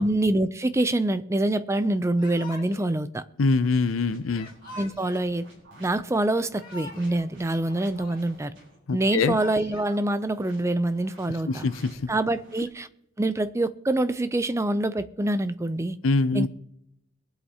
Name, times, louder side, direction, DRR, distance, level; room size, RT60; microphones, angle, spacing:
voice 1, 0.0-3.2 4.8-5.4 5.8-8.5 8.9-11.7 12.1-12.9 13.2-16.0 16.3-16.5, right 1 dB, 15° right, 0.4 m, -25 dB
Yell / Crying sobbing, 2.2-3.0 4.3-5.3 6.3-7.3 7.5-8.5 9.1-10.0, left 3 dB, 45° left, 1.9 m, -44 dB
voice 2, 3.4-4.5 8.9-9.4 11.5-12.1 16.0-16.5, left 3 dB, 80° left, 0.6 m, -24 dB
sound 1, 3.5-8.8 10.2-12.7, right 1 dB, 60° right, 4.2 m, -52 dB
22.5 x 7.9 x 2.9 m
head